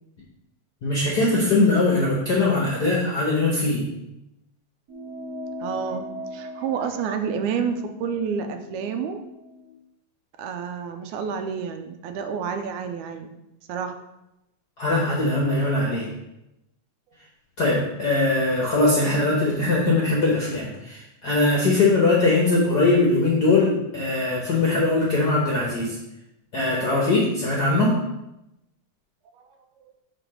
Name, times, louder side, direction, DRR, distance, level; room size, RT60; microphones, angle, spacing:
voice 1, 0.8-3.8 14.8-16.1 17.6-26.0 26.5-28.0, left 2 dB, 55° left, -4 dB, 1.1 m, -21 dB
sound 1, 4.9-9.7, equal, 60° right, 1.0 m, -39 dB
voice 2, 5.6-9.2 10.4-13.3 13.7-14.0 29.4-29.5, right 6 dB, 85° right, 7 dB, 2.1 m, -29 dB
5.1 x 4.9 x 6.2 m, 0.89 s
omnidirectional pair, 3.4 m